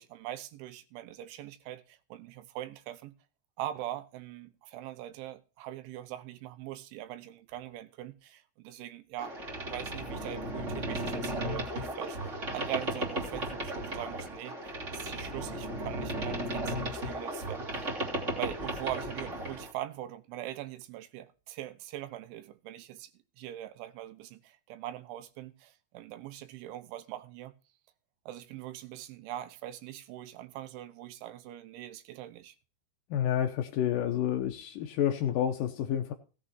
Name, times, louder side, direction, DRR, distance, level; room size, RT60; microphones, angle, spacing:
voice 1, 0.0-3.1 3.6-9.3 9.7-17.9 18.4-23.1 23.4-27.5 28.3-32.6, right 13 dB, 85° right, 3.4 m, -42 dB
Boat Water vehicle, 9.2-19.7, right 1 dB, 20° right, 2.3 m, -35 dB
voice 2, 33.1-36.1, left 10 dB, 75° left, 2.0 m, -29 dB
16.5 x 7.5 x 4.3 m
omnidirectional pair, 5.3 m